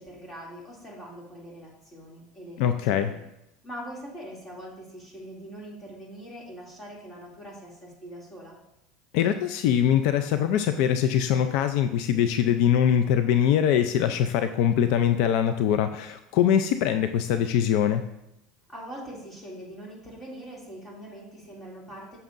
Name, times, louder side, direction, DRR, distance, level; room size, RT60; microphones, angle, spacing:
voice 1, 0.0-3.2 3.6-8.6 18.7-22.2, equal, 15° left, -4 dB, 2.6 m, -42 dB
voice 2, 2.6-3.1 9.1-18.0, left 9 dB, 65° left, 9 dB, 0.4 m, -23 dB
9.1 x 7.0 x 2.6 m, 0.86 s
supercardioid pair, 135°, 0 cm